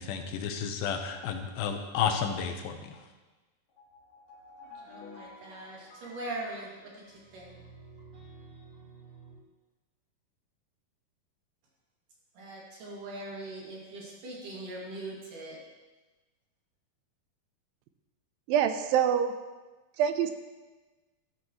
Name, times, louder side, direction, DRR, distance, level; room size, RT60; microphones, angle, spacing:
voice 1, 0.0-3.1, left 7 dB, 90° left, 6 dB, 2.8 m, -32 dB
sound 1, 3.7-7.7, left 3 dB, 55° left, 3.3 m, -52 dB
voice 2, 4.7-7.6 12.4-15.6, right 2 dB, 65° right, -4 dB, 3.9 m, -41 dB
sound 2, 5.4-9.3, right 4 dB, 30° right, 3.3 m, -53 dB
voice 3, 18.5-19.3 20.0-20.3, right 9 dB, 85° right, 9 dB, 2.4 m, -25 dB
14.0 x 11.5 x 3.1 m, 1.2 s
omnidirectional pair, 4.1 m